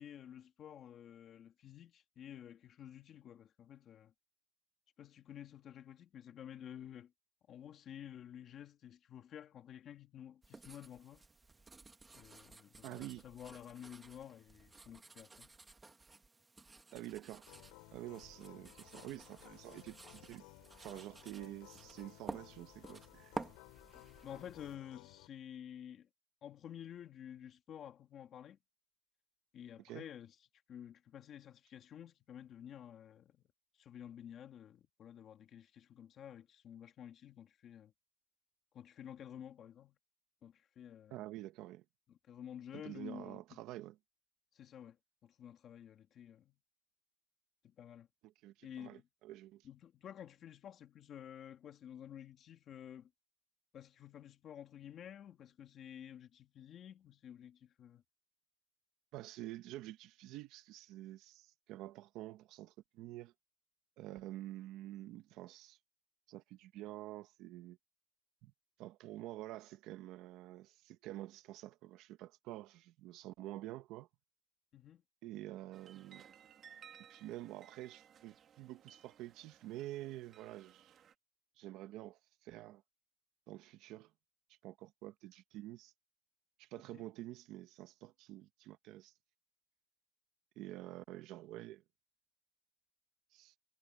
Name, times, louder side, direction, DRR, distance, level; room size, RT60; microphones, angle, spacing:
voice 1, 0.0-4.1 5.0-7.1 7.5-11.2 12.1-15.5 24.2-26.1 26.4-28.6 29.5-30.3 30.7-33.4 33.7-37.9 38.7-40.0 40.4-41.2 42.1-43.4 44.5-45.0 45.2-46.6 47.6-48.1 48.6-49.1 49.6-53.1 53.7-58.0 74.7-75.0 86.9-87.0, left 9 dB, 35° left, 2.2 m, -51 dB
sound 1, 10.4-24.8, right 3 dB, 10° right, 1.7 m, -53 dB
voice 2, 12.8-13.2 16.9-17.5 17.9-20.4 20.8-23.4 29.8-30.0 41.1-41.8 42.8-44.0 48.2-49.7 59.1-63.3 64.0-65.8 66.3-67.8 68.4-68.5 68.8-74.1 75.2-76.3 77.1-81.0 81.6-82.8 83.5-84.1 84.6-85.9 86.6-89.1 90.6-91.8 93.3-93.5, right 15 dB, 55° right, 1.1 m, -48 dB
sound 2, 17.5-25.3, left 28 dB, 85° left, 6.9 m, -58 dB
sound 3, 75.7-81.1, right 8 dB, 30° right, 2.6 m, -60 dB
cardioid pair, 175°, 0 cm